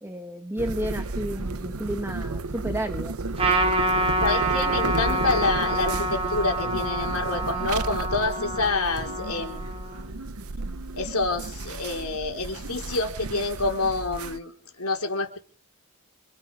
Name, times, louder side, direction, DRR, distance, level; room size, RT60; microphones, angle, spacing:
voice 1, 0.0-3.1, right 1 dB, 10° right, 6 dB, 1.3 m, -32 dB
sound 1, 0.6-14.4, right 3 dB, 85° right, 1.0 m, -33 dB
Trumpet, 3.4-10.1, right 2 dB, 25° right, 4.1 m, -27 dB
voice 2, 4.2-9.6 11.0-14.5 14.8-15.4, left 3 dB, 90° left, 3 dB, 4.2 m, -27 dB
26.5 x 9.1 x 5.7 m, 0.42 s
head